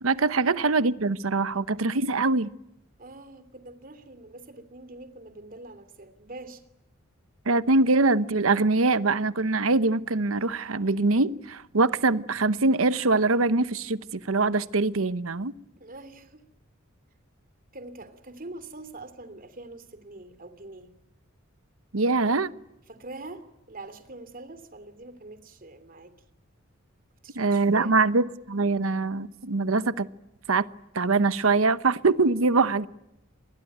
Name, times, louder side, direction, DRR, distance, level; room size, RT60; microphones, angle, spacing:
voice 1, 0.0-2.5 7.5-15.5 21.9-22.5 27.4-30.1 30.5-30.7 30.9-32.9, right 3 dB, 85° right, 1.0 m, -23 dB
voice 2, 3.0-6.6 15.8-16.4 17.7-20.9 22.9-26.1 27.2-28.0, right 2 dB, 45° right, 2.8 m, -44 dB
26.0 x 20.5 x 9.3 m
head